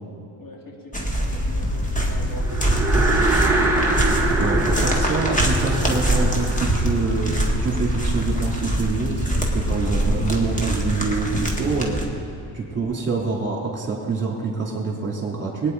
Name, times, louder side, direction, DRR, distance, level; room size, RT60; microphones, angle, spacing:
voice 1, 0.4-3.4 4.2-5.0 12.7-13.0, left 1 dB, 55° left, -1 dB, 2.8 m, -39 dB
sound 1, 0.9-12.0, equal, 20° left, 1.8 m, -23 dB
sound 2, 2.4-7.9, right 3 dB, 5° right, 1.6 m, -25 dB
voice 2, 4.4-12.0 12.5-15.7, right 4 dB, 30° right, -2 dB, 3.2 m, -26 dB
19.5 x 9.6 x 4.1 m, 2.8 s
cardioid pair, 100°, 39 cm